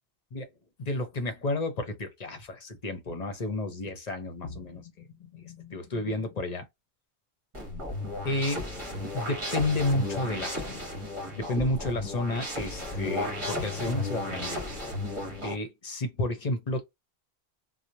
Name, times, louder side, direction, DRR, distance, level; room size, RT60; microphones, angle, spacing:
voice 1, 0.8-6.7 8.2-8.7 9.1-10.8 11.4-14.6 15.4-16.8, left 2 dB, 45° left, 0.7 m, -31 dB
sound 1, 7.5-15.5, left 1 dB, 30° right, 1.2 m, -34 dB
3.0 x 2.1 x 2.5 m
omnidirectional pair, 1.0 m